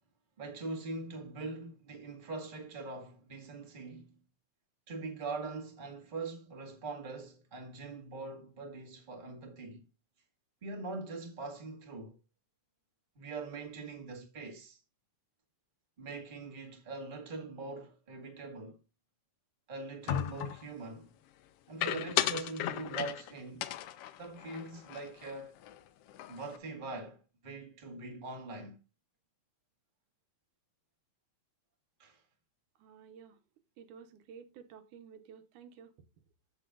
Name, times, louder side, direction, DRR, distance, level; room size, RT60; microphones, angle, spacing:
voice 1, 0.4-4.1 4.9-9.9 10.6-12.2 13.1-14.8 16.0-18.8 19.7-21.1 21.7-23.7 24.2-25.6 26.3-28.8 32.0-32.2, right 3 dB, 20° right, 1.6 m, -42 dB
sound 1, 20.1-20.7 21.8-23.3 23.6-25.3 25.6-25.8 26.1-26.6, left 12 dB, 85° left, 1.3 m, -35 dB
voice 2, 32.8-33.4 33.8-35.9, right 7 dB, 90° right, 2.5 m, -53 dB
14.5 x 6.3 x 2.5 m
omnidirectional pair, 3.5 m